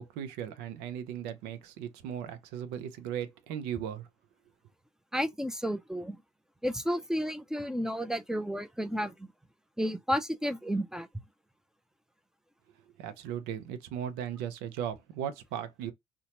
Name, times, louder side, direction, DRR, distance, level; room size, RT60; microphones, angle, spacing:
voice 1, 0.0-4.1 13.0-15.9, right 9 dB, 75° right, 0.6 m, -37 dB
voice 2, 5.1-6.2 6.6-9.3 9.8-11.1, equal, 5° right, 0.5 m, -32 dB
2.8 x 2.2 x 2.8 m
hypercardioid pair, 60°, 17 cm